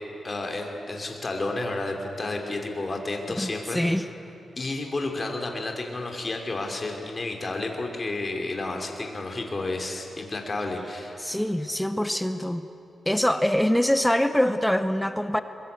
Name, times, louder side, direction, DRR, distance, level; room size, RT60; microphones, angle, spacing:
voice 1, 0.2-3.8 4.6-11.2, left 2 dB, 30° left, 3 dB, 3.0 m, -31 dB
voice 2, 3.4-4.1 11.2-12.6 13.1-15.4, equal, 5° left, 10 dB, 0.7 m, -24 dB
22.0 x 22.0 x 8.1 m, 2.8 s
wide cardioid pair, 125°, 0 cm